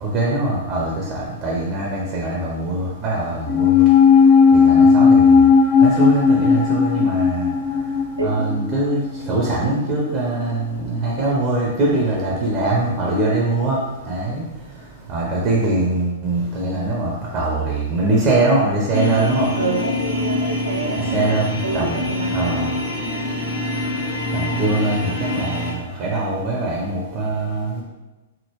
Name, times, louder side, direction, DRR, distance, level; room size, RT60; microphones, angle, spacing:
voice 1, 0.0-3.9 4.5-5.3 5.8-7.5 8.2-13.8 14.1-14.4 15.1-19.5 21.1-22.1 22.3-22.7 24.3-27.7, right 2 dB, 30° right, -3 dB, 0.6 m, -22 dB
sound 1, 3.5-10.0 10.3-10.4, left 6 dB, 35° left, 0.4 m, -15 dB
sound 2, 18.9-25.7, left 1 dB, 50° left, 0.8 m, -25 dB
voice 2, 19.6-21.4 21.6-22.7, right 3 dB, 75° right, 1 dB, 0.4 m, -27 dB
3.5 x 2.0 x 3.0 m, 1.1 s
figure-of-eight pair, 105°, 0 cm